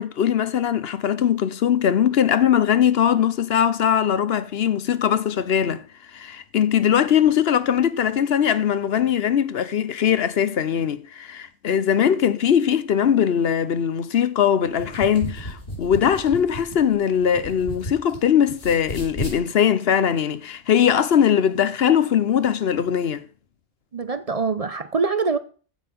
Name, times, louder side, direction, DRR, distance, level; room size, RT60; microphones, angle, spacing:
voice 1, 0.0-5.8 6.1-23.2, left 9 dB, 70° left, 1.0 m, -20 dB
sound 1, 14.6-18.2 18.5-19.4, equal, 85° left, 4.9 m, -34 dB
voice 2, 23.9-25.4, right 4 dB, 40° right, 0.6 m, -24 dB
14.5 x 5.6 x 5.9 m
omnidirectional pair, 1.1 m